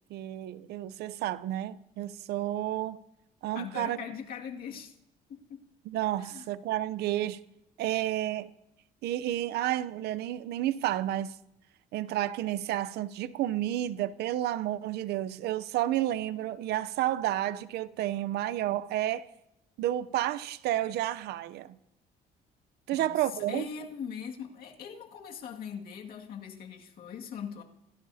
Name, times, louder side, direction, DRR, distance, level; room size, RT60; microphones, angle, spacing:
voice 1, 0.1-3.0 3.4-4.0 5.9-7.4 7.8-8.5 9.0-11.3 11.9-19.3 19.8-21.8 22.9-23.7, right 13 dB, 75° right, 0.7 m, -31 dB
voice 2, 3.5-4.9 5.3-5.6 6.2-6.5 22.9-27.6, left 7 dB, 60° left, 2.1 m, -41 dB
27.5 x 18.0 x 2.8 m
cardioid pair, 110°, 17 cm